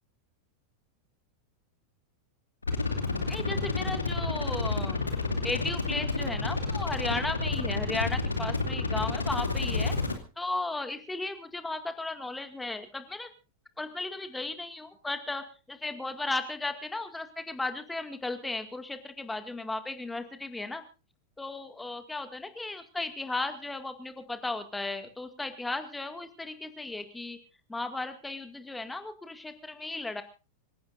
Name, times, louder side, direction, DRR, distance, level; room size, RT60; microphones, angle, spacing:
sound 1, 2.6-10.2, left 3 dB, 80° left, 2.6 m, -30 dB
voice 1, 3.3-5.0 5.4-10.0 10.4-13.3 13.8-20.8 21.4-27.4 27.7-30.2, left 2 dB, 10° left, 8 dB, 2.1 m, -35 dB
26.0 x 17.0 x 2.6 m, 0.34 s
figure-of-eight pair, 90°, 0 cm